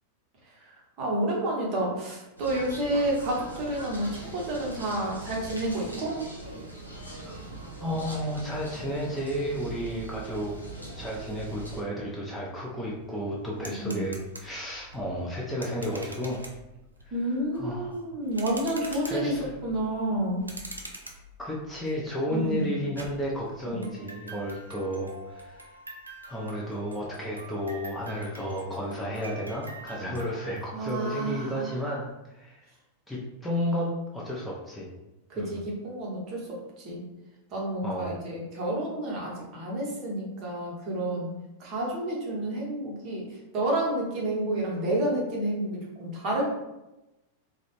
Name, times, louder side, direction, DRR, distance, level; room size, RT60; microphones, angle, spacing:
voice 1, 0.6-6.2 13.7-14.0 17.1-19.3 19.6-20.4 22.3-22.8 23.7-23.9 30.7-31.7 35.3-37.1 37.5-46.5, right 1 dB, 40° right, -3 dB, 0.9 m, -30 dB
sound 1, 2.4-11.8, right 2 dB, 90° left, 0.5 m, -41 dB
voice 2, 7.8-10.5 10.9-16.4 17.0-17.2 17.5-18.0 18.9-19.5 21.4-25.7 26.2-32.0 32.3-32.7 33.1-34.9 35.3-35.6 37.8-38.1, equal, 5° left, -5 dB, 0.5 m, -32 dB
sound 2, 12.2-12.3 12.6-30.6, right 1 dB, 80° right, 0.3 m, -45 dB
2.4 x 2.0 x 2.9 m, 0.97 s
figure-of-eight pair, 90°, 0 cm